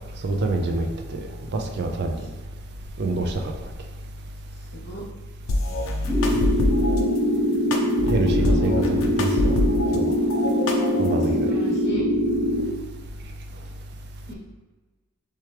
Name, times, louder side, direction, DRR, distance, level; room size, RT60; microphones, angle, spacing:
voice 1, 0.2-2.2 3.0-3.4 8.1-9.6 9.9-10.1 11.0-11.5, right 2 dB, 55° right, 3 dB, 0.4 m, -26 dB
sound 1, 5.5-7.0 7.7-10.0 10.3-11.3, left 2 dB, 80° left, 0.6 m, -25 dB
sound 2, 6.1-12.6, equal, 5° left, 0.6 m, -23 dB
voice 2, 8.0-8.7 11.3-12.0 14.3-14.4, right 1 dB, 55° left, -5 dB, 1.4 m, -36 dB
4.4 x 3.5 x 3.3 m, 1.3 s
head